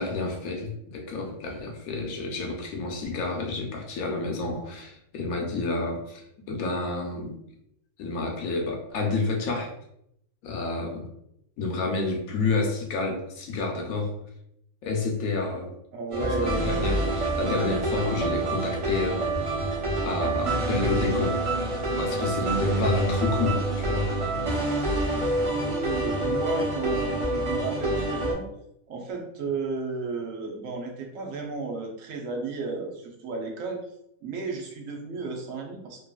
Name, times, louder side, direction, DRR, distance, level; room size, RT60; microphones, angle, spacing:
voice 1, 0.0-7.4 8.0-9.7 10.4-11.1 11.6-14.2 14.8-15.7 16.2-19.6 20.0-21.4 22.0-24.1, left 3 dB, 75° left, 2 dB, 1.1 m, -30 dB
voice 2, 15.9-16.7 23.4-24.1 25.3-28.5 28.9-33.8 34.2-36.1, right 4 dB, 70° right, 1 dB, 0.9 m, -33 dB
sound 1, 16.1-28.3, right 2 dB, 30° right, 0.7 m, -27 dB
2.9 x 2.6 x 2.3 m, 0.76 s
omnidirectional pair, 1.5 m